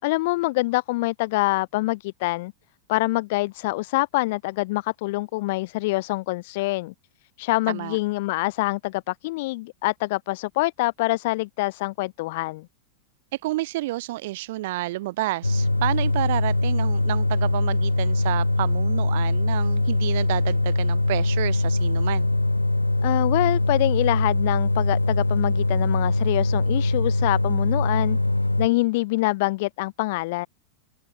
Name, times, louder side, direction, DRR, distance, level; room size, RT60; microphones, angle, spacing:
voice 1, 0.0-2.5 2.9-6.9 7.4-12.7 23.0-28.2 28.6-30.5, left 21 dB, 50° left, 5.4 m, -25 dB
voice 2, 13.4-22.3, right 18 dB, 50° right, 3.9 m, -30 dB
sound 1, 15.4-28.7, left 2 dB, 85° left, 3.2 m, -22 dB
figure-of-eight pair, 90°, 0 cm